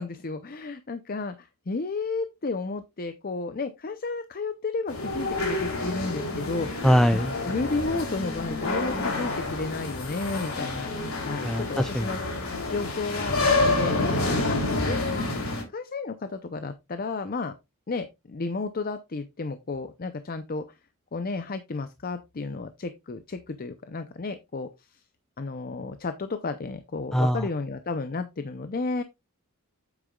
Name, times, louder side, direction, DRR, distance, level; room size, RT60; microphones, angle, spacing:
voice 1, 0.0-6.9 7.1-10.9 11.2-12.2 12.7-14.1 14.5-15.2 15.7-17.5 17.9-20.8 21.1-25.0 25.4-29.0, left 3 dB, 40° left, 0.6 m, -32 dB
sound 1, 4.9-15.6, left 2 dB, 65° left, 3.2 m, -28 dB
voice 2, 6.8-7.3 11.4-12.2 27.1-27.5, equal, ahead, 0.3 m, -22 dB
8.7 x 8.1 x 2.3 m
head